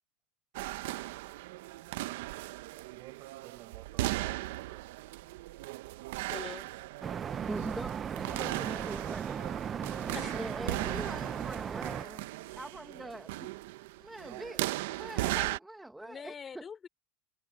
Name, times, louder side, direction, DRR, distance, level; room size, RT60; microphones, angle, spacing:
sound 1, 0.5-15.6, right 18 dB, 70° right, 0.8 m, -38 dB
voice 1, 2.9-4.8 14.2-14.4, right 17 dB, 45° right, 7.5 m, -53 dB
voice 2, 6.3-6.7 10.1-10.4 16.0-16.9, left 6 dB, 20° left, 3.2 m, -44 dB
sound 2, 7.0-12.0, right 8 dB, 25° right, 0.5 m, -37 dB
voice 3, 7.5-9.5 10.3-12.3 12.6-13.5 14.0-16.7, right 1 dB, 5° right, 1.4 m, -43 dB
supercardioid pair, 140°, 0 cm